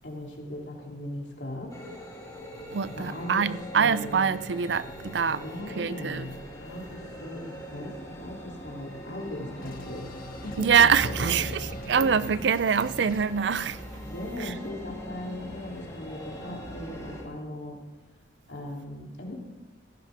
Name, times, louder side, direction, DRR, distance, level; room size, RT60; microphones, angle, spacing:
voice 1, 0.0-1.7 2.9-4.2 5.2-6.3 6.6-10.1 10.4-12.1 14.0-17.8 18.5-19.3, left 1 dB, 70° left, 3.2 m, -38 dB
sound 1, 1.7-17.2, equal, 20° left, 2.2 m, -41 dB
voice 2, 2.7-5.4 5.8-6.3 10.6-13.8 14.4-14.5, right 6 dB, 65° right, 0.5 m, -24 dB
sound 2, 9.6-13.3, left 2 dB, 50° left, 1.1 m, -46 dB
16.5 x 14.5 x 3.6 m
head